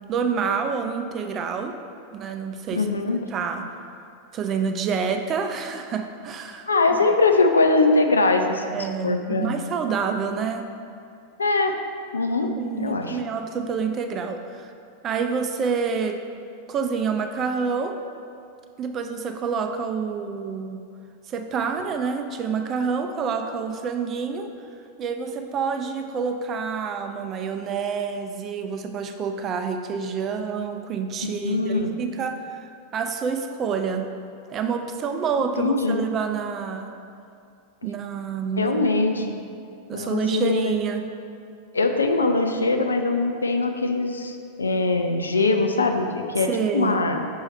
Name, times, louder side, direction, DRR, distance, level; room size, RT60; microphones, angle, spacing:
voice 1, 0.1-1.7 2.1-2.9 3.3-3.8 4.3-7.0 8.7-10.7 12.4-14.7 15.0-16.2 16.7-18.0 18.8-20.8 21.3-24.5 25.0-34.1 34.5-37.0 37.8-38.8 39.9-41.0 46.5-47.0, right 6 dB, 30° right, 6 dB, 0.5 m, -28 dB
voice 2, 2.7-3.2 6.7-9.5 11.4-11.7 12.1-12.5 12.8-13.2 31.4-31.9 35.6-36.0 38.6-39.3 39.9-40.7 41.7-47.2, left 3 dB, 75° left, 5 dB, 0.5 m, -22 dB
6.3 x 4.7 x 4.2 m, 2.5 s
figure-of-eight pair, 90°, 0 cm